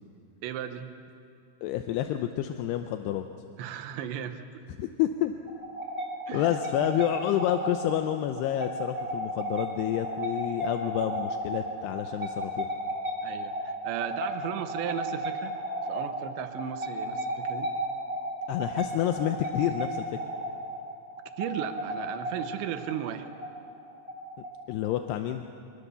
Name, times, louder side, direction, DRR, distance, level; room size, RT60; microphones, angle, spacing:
voice 1, 0.4-0.9 3.6-4.6 6.3-6.6 13.2-15.6 15.9-17.7 21.4-23.3, right 10 dB, 90° right, 8 dB, 3.3 m, -35 dB
voice 2, 1.6-3.3 4.8-5.3 6.3-12.7 18.5-20.0 24.7-25.4, left 11 dB, 80° left, 7 dB, 2.7 m, -29 dB
sound 1, 5.5-24.9, right 1 dB, 15° right, 2.8 m, -34 dB
25.5 x 23.0 x 6.9 m, 2.4 s
omnidirectional pair, 5.0 m